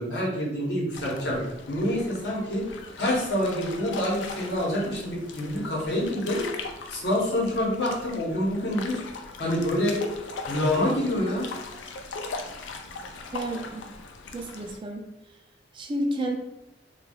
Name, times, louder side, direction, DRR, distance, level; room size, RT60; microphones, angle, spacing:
voice 1, 0.0-1.4 1.7-6.4 6.9-9.0 9.4-10.0 10.5-11.5, left 1 dB, 65° left, -4 dB, 0.9 m, -27 dB
sound 1, 0.9-14.8, left 4 dB, 80° left, 0.4 m, -40 dB
voice 2, 13.3-13.9 14.3-15.1 15.7-16.4, right 1 dB, 25° right, 2 dB, 0.3 m, -31 dB
3.2 x 2.3 x 2.3 m, 0.96 s
head